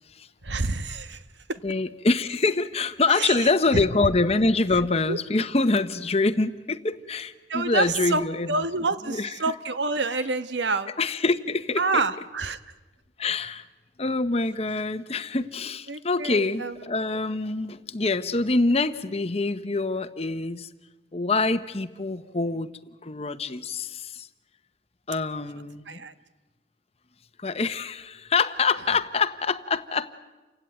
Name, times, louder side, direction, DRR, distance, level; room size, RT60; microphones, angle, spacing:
voice 1, 0.4-1.2 1.5-1.6 3.1-4.1 5.1-5.2 7.5-10.9 11.8-12.6 15.9-16.9 25.9-26.1, right 3 dB, 80° right, 12 dB, 1.2 m, -28 dB
voice 2, 1.6-8.5 9.1-9.3 11.0-12.0 13.2-13.6 14.0-20.7 21.1-22.7 23.0-24.3 25.1-26.0 27.4-30.1, left 3 dB, 35° left, 12 dB, 0.9 m, -25 dB
29.0 x 16.5 x 9.3 m, 1.2 s
head